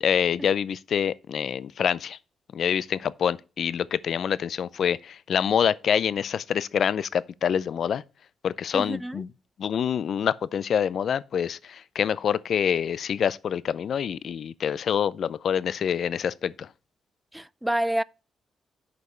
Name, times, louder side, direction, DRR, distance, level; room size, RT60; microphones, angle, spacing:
voice 1, 0.0-2.2 2.5-8.0 8.4-9.3 9.6-16.7, left 8 dB, 65° left, 0.4 m, -26 dB
voice 2, 8.7-9.2 17.3-18.0, right 1 dB, 5° right, 0.3 m, -28 dB
8.2 x 5.3 x 4.3 m
cardioid pair, 70°, 0 cm